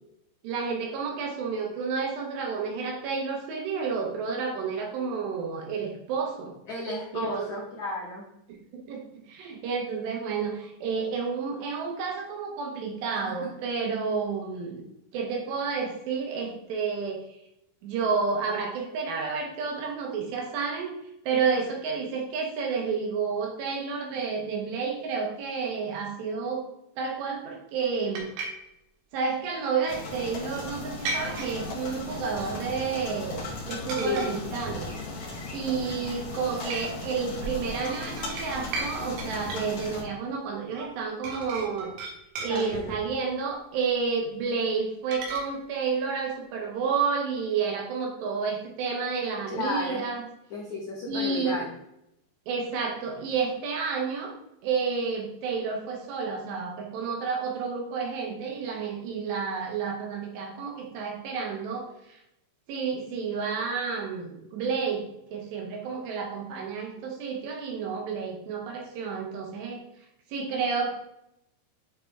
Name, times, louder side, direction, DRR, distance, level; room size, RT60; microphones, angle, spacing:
voice 1, 0.4-6.5 7.1-7.6 8.7-14.8 15.1-17.2 17.8-20.9 21.2-26.7 27.0-28.3 29.1-34.9 35.5-41.9 42.4-50.2 51.1-51.6 52.5-54.3 54.6-62.2 62.7-65.1 65.3-69.8 70.3-71.0, right 5 dB, 70° right, 0 dB, 3.0 m, -30 dB
voice 2, 6.7-8.2 13.3-13.4 33.9-34.3 42.5-43.0 49.5-50.0 50.5-51.7, left 2 dB, 75° left, -4 dB, 1.7 m, -33 dB
sound 1, 28.2-28.5 29.8-30.3 31.1-31.5 32.3-32.8 33.1-33.4 33.9-34.3 34.7-34.9 35.5-36.0 36.7-36.8 37.4-38.9 39.2-39.7 40.8-40.9 41.2-43.1 45.1-45.4, right 3 dB, 85° right, 3.9 m, -36 dB
sound 2, 29.9-40.0, left 3 dB, 50° left, 2.3 m, -37 dB
9.9 x 4.0 x 3.6 m, 0.82 s
omnidirectional pair, 5.6 m